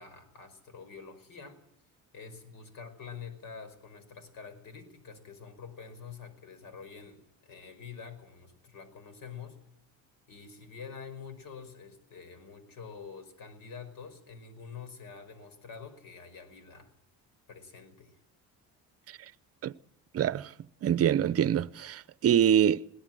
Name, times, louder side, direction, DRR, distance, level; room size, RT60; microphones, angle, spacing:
voice 1, 0.0-1.6 2.1-9.6 10.3-16.9 17.5-18.2, left 6 dB, 65° left, 5.2 m, -47 dB
voice 2, 20.1-20.5 20.8-22.9, right 9 dB, 45° right, 0.7 m, -25 dB
21.5 x 17.5 x 7.6 m
cardioid pair, 110°, 35 cm